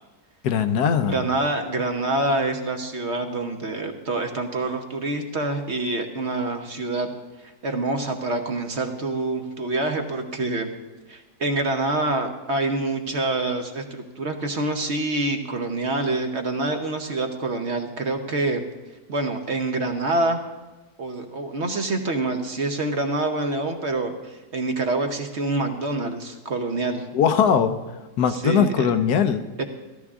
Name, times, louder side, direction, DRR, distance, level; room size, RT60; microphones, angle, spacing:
voice 1, 0.4-1.2 27.1-27.8 28.2-29.4, left 7 dB, 75° left, 10 dB, 1.3 m, -20 dB
voice 2, 1.0-7.1 7.4-10.7 11.1-18.6 19.1-20.4 21.0-27.1 28.3-28.9 29.6-29.7, right 2 dB, 50° right, 5 dB, 1.1 m, -26 dB
14.0 x 13.5 x 3.6 m, 1.2 s
omnidirectional pair, 1.7 m